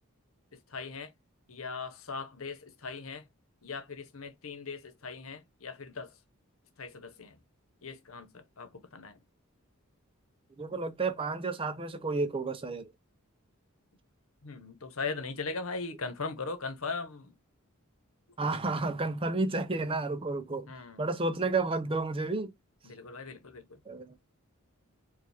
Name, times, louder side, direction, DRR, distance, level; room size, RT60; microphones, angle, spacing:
voice 1, 0.7-1.1 1.5-3.2 3.6-6.1 6.8-7.4 7.8-9.2 14.4-17.3 20.7-21.1 22.8-23.8, left 4 dB, 75° left, 1.0 m, -39 dB
voice 2, 10.6-12.9 18.4-20.7 21.0-22.5 23.9-24.1, right 3 dB, 25° right, 0.5 m, -31 dB
5.0 x 2.4 x 3.4 m
head